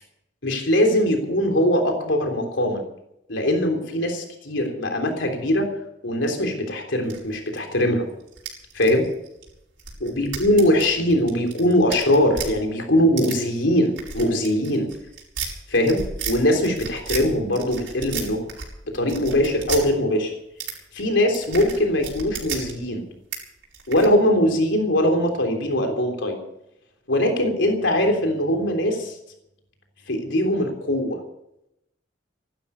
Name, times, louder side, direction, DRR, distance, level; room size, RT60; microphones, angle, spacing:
voice 1, 0.4-2.8 3.3-5.7 6.0-8.1 8.7-9.1 10.0-14.9 15.7-16.0 16.3-18.5 18.9-20.3 20.9-23.0 23.9-26.4 27.1-29.2 30.1-31.2, left 1 dB, 80° left, 3 dB, 3.5 m, -21 dB
sound 1, 7.1-7.8 8.2-12.5 13.2-13.4 13.9-16.3 16.6-17.3 17.5-18.7 18.9-19.8 20.6-20.7 21.0-22.7 23.3-23.4 23.6-24.1, right 6 dB, 80° right, 5.0 m, -33 dB
16.0 x 12.0 x 7.0 m, 0.82 s
head